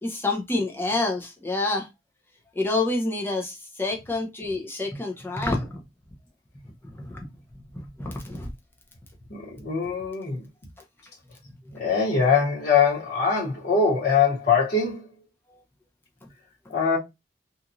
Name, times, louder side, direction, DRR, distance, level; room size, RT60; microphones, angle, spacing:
voice 1, 0.0-1.9 2.6-5.8 6.8-7.2 8.0-8.5, left 2 dB, 10° left, 0.5 m, -28 dB
voice 2, 9.3-10.4 11.7-15.1 16.7-17.0, left 5 dB, 50° left, 1.2 m, -22 dB
2.9 x 2.5 x 2.5 m
head